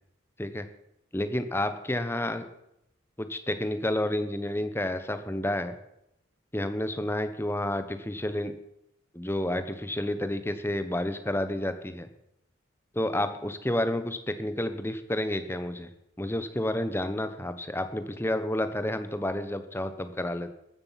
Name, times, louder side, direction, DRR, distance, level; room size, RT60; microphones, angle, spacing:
voice 1, 1.1-2.5 3.2-5.7 6.5-8.5 9.1-12.1 12.9-15.9 16.2-20.5, left 1 dB, 10° left, 10 dB, 1.0 m, -30 dB
14.5 x 13.0 x 5.8 m, 0.81 s
head